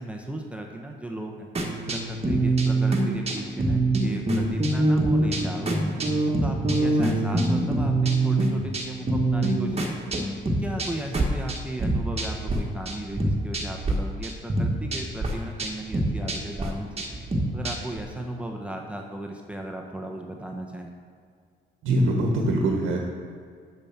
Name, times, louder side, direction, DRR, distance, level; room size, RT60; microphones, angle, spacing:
voice 1, 0.0-1.5 1.9-6.0 6.4-10.0 10.5-17.1 17.5-20.9, right 1 dB, 5° right, 1 dB, 0.9 m, -36 dB
sound 1, 1.5-12.6 12.8-13.9 14.2-18.0, right 2 dB, 30° right, 1.4 m, -25 dB
voice 2, 21.8-23.0, right 1 dB, 90° right, 1 dB, 1.3 m, -23 dB
7.0 x 6.8 x 5.9 m, 2.1 s
cardioid pair, 90°, 20 cm